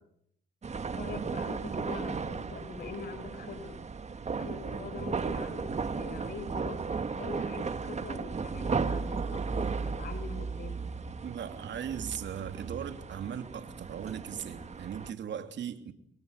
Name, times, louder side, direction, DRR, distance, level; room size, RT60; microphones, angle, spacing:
sound 1, 0.6-15.1, right 5 dB, 35° right, 1.9 m, -35 dB
voice 1, 0.8-3.8 4.4-10.8, left 4 dB, 50° left, 11 dB, 5.3 m, -43 dB
voice 2, 11.2-15.9, right 8 dB, 65° right, 7 dB, 3.2 m, -38 dB
29.0 x 23.0 x 6.8 m, 0.70 s
cardioid pair, 90°, 20 cm